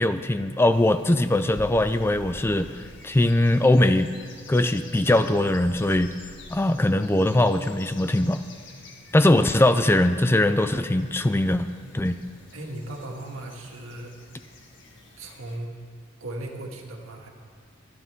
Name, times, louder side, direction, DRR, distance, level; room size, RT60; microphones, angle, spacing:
voice 1, 0.0-4.1 4.5-6.1 6.5-8.4 9.1-11.7 11.9-12.1, left 1 dB, 10° left, 10 dB, 0.4 m, -21 dB
sound 1, 0.7-15.6, left 2 dB, 65° left, 2.0 m, -48 dB
voice 2, 12.5-14.1 15.2-15.7 16.2-17.3, right 1 dB, 85° right, 1 dB, 2.0 m, -37 dB
23.5 x 10.5 x 3.6 m, 2.1 s
head